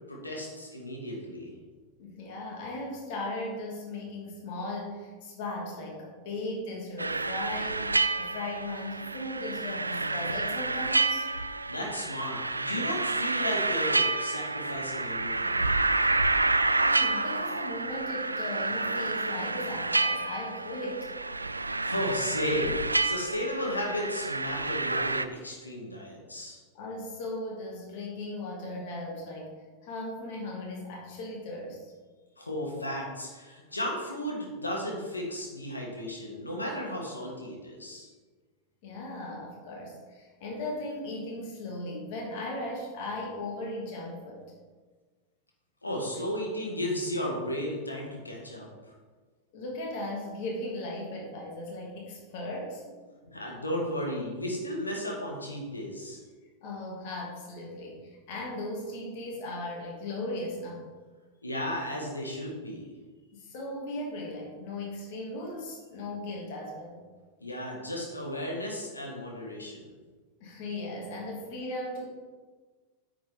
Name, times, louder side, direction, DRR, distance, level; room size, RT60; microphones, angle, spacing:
voice 1, 0.1-1.5 11.7-15.6 21.8-26.6 32.4-38.1 45.8-48.7 53.2-56.2 61.4-62.9 67.4-69.8, left 1 dB, 80° left, -1 dB, 2.1 m, -34 dB
voice 2, 2.0-11.3 16.8-21.1 26.7-29.5 29.8-31.9 38.8-44.5 49.5-53.0 56.6-60.8 63.3-67.1 70.4-72.1, left 1 dB, 50° left, -2 dB, 2.5 m, -37 dB
sound 1, 7.0-25.3, right 3 dB, 80° right, 0.3 m, -29 dB
9.3 x 7.3 x 3.7 m, 1.4 s
figure-of-eight pair, 90°, 0 cm